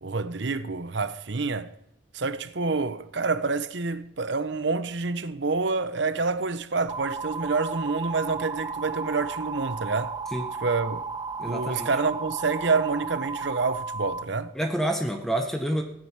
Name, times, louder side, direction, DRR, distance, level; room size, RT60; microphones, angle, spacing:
voice 1, 0.0-1.7 2.1-10.2 10.6-11.0 11.5-14.5, right 4 dB, 65° right, 0.9 m, -27 dB
sound 1, 6.9-14.2, right 4 dB, 20° right, 0.7 m, -34 dB
voice 2, 11.4-11.9 14.5-15.8, right 1 dB, ahead, 1.1 m, -28 dB
15.0 x 7.7 x 8.8 m
head